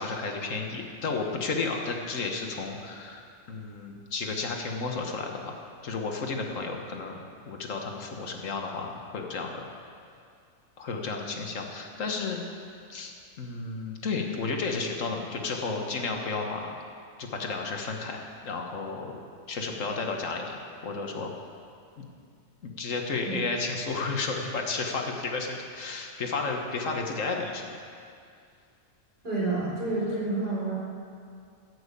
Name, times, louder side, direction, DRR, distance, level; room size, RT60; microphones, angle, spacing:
voice 1, 0.0-3.2 3.5-5.5 5.8-9.6 10.8-12.4 12.9-16.8 17.2-19.2 19.5-21.3 22.0-22.1 22.6-27.8, left 4 dB, 75° left, 2 dB, 1.7 m, -32 dB
voice 2, 29.2-30.7, right 2 dB, 45° right, -7 dB, 4.5 m, -29 dB
14.5 x 6.3 x 8.3 m, 2.3 s
omnidirectional pair, 1.3 m